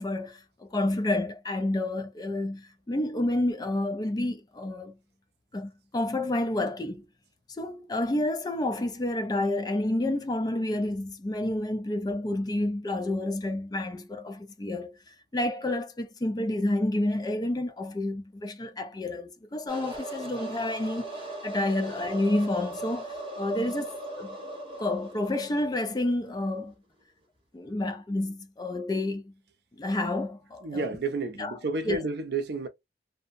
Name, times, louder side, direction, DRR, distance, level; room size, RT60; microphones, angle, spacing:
voice 1, 0.0-5.0 5.5-7.1 7.5-21.1 21.4-24.4 24.8-26.7 27.5-29.3 29.8-30.9 31.4-31.5 31.9-32.0, left 1 dB, 20° left, 0.4 m, -29 dB
sound 1, 19.7-26.3, right 1 dB, 30° right, 0.9 m, -39 dB
voice 2, 30.6-32.7, right 3 dB, 60° right, 0.5 m, -31 dB
2.6 x 2.0 x 2.4 m
head